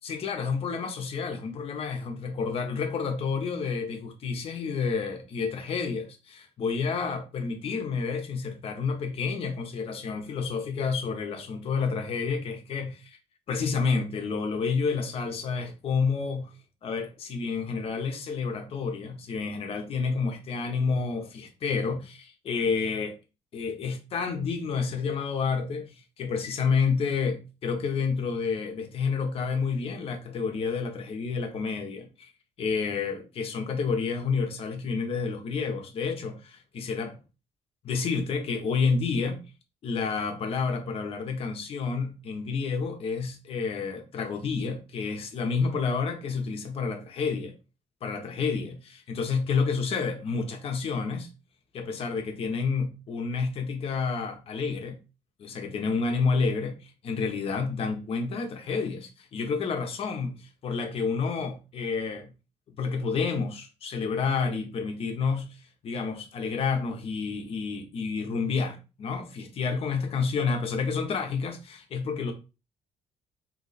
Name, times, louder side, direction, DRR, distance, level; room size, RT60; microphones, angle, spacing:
voice 1, 0.0-13.2 13.5-16.5 16.8-23.1 23.5-32.3 32.6-37.2 37.8-39.4 39.8-47.5 48.0-51.3 51.7-55.0 55.4-60.3 60.6-62.3 62.7-65.5 65.8-72.3, left 5 dB, 50° left, 0.9 m, -29 dB
4.1 x 3.0 x 3.1 m
cardioid pair, 150°, 13 cm